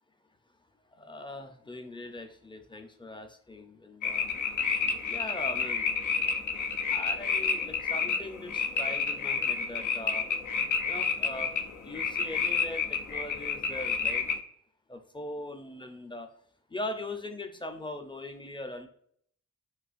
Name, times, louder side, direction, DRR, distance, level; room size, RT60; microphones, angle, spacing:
voice 1, 0.9-4.3 5.1-6.0 6.9-10.3 10.9-11.5 11.8-14.3 14.9-16.3 16.7-18.9, left 1 dB, 15° left, 7 dB, 0.5 m, -40 dB
sound 1, 4.0-14.4, left 5 dB, 70° left, 0.5 m, -30 dB
4.0 x 2.4 x 2.4 m, 0.64 s
cardioid pair, 55°, 31 cm